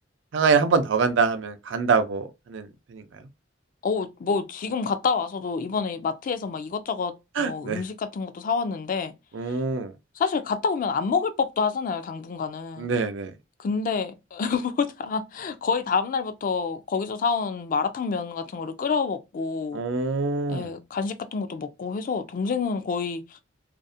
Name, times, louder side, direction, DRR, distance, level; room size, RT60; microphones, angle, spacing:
voice 1, 0.3-3.0 7.4-7.8 9.3-9.9 12.8-13.3 19.7-20.7, right 5 dB, 70° right, 0.4 m, -24 dB
voice 2, 3.8-9.1 10.2-12.9 13.6-19.8 20.5-23.4, left 5 dB, 45° left, 0.3 m, -28 dB
2.5 x 2.0 x 2.5 m
head